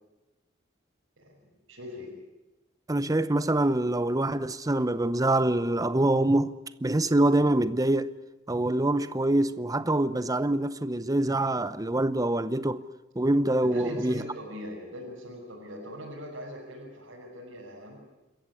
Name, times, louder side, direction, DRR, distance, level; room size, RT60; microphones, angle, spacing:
voice 1, 1.2-2.1 13.6-18.0, equal, 80° right, 6.0 m, -41 dB
voice 2, 2.9-6.6 6.8-8.1 8.5-12.8 13.2-14.2, right 1 dB, 20° right, 0.8 m, -25 dB
27.0 x 14.5 x 9.8 m
head